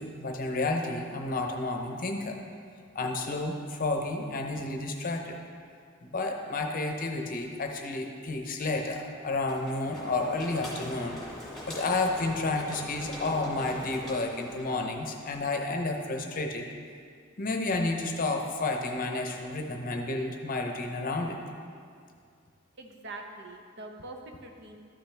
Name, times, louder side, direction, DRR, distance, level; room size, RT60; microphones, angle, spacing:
voice 1, 0.0-2.4 2.9-5.4 6.0-16.7 17.4-21.4, left 2 dB, 40° left, 3 dB, 0.7 m, -31 dB
sound 1, 9.5-15.0, left 1 dB, ahead, 1.8 m, -42 dB
voice 2, 22.8-24.8, right 2 dB, 55° right, 3 dB, 0.8 m, -43 dB
12.5 x 5.8 x 3.4 m, 2.2 s
head